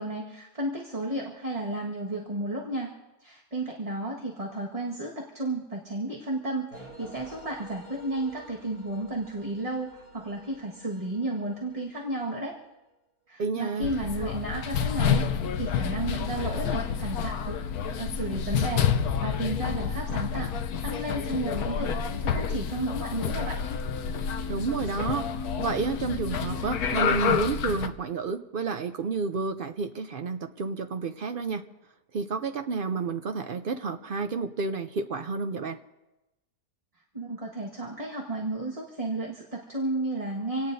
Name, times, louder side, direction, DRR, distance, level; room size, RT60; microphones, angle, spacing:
voice 1, 0.0-2.9 3.2-12.6 13.3-17.6 17.9-18.9 19.2-20.5 20.8-23.6 37.1-40.7, right 2 dB, 25° right, -2 dB, 1.6 m, -33 dB
sound 1, 6.7-12.7, right 2 dB, 40° left, 5.5 m, -50 dB
voice 2, 13.4-13.9 24.5-25.3 25.6-31.6 32.1-35.8, right 4 dB, 60° right, 8 dB, 0.6 m, -30 dB
sound 2, 13.8-27.9, left 7 dB, 80° left, 1.3 m, -29 dB
27.0 x 17.5 x 2.7 m, 1.0 s
omnidirectional pair, 1.6 m